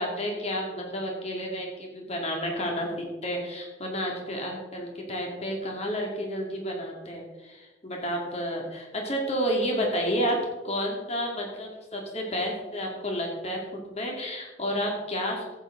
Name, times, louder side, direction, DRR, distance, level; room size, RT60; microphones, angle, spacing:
voice 1, 0.0-10.4 10.6-15.6, equal, 35° left, 0 dB, 2.5 m, -31 dB
14.5 x 8.7 x 3.9 m, 1.1 s
head